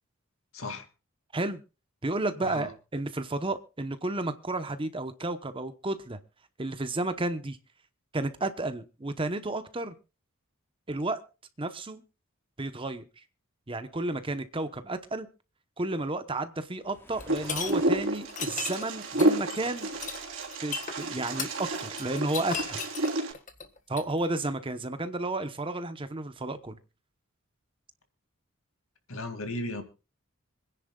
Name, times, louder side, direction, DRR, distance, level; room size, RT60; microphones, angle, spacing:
voice 1, 0.5-0.9 2.4-2.7 29.1-29.8, left 2 dB, 75° left, 2.3 m, -35 dB
voice 2, 2.0-6.2 6.6-7.6 8.1-9.9 10.9-11.2 11.6-12.0 12.6-13.1 13.7-15.3 15.8-19.9 20.6-22.8 23.9-26.8, right 2 dB, 25° right, 0.9 m, -32 dB
Waves surf, 16.8-18.3, left 1 dB, 10° left, 2.9 m, -50 dB
sound 1, 17.2-17.7 18.3-24.1, left 6 dB, 35° left, 1.5 m, -36 dB
Wind, 17.3-23.3, right 1 dB, 65° right, 3.4 m, -30 dB
26.0 x 10.0 x 2.3 m
head